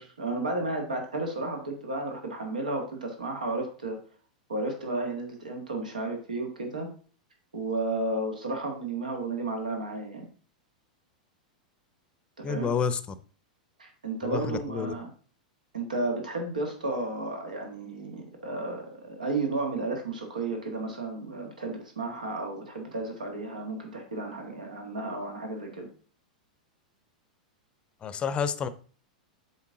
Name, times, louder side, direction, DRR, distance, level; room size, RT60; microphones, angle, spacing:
voice 1, 0.0-4.0 4.5-6.9 7.5-10.3 12.4-12.7 13.8-15.1 15.7-25.9, right 2 dB, 80° right, 3 dB, 1.6 m, -33 dB
voice 2, 12.4-13.0 14.2-14.9 28.0-28.7, left 6 dB, 25° left, 15 dB, 0.6 m, -29 dB
7.4 x 4.3 x 3.8 m, 0.42 s
figure-of-eight pair, 95°, 4 cm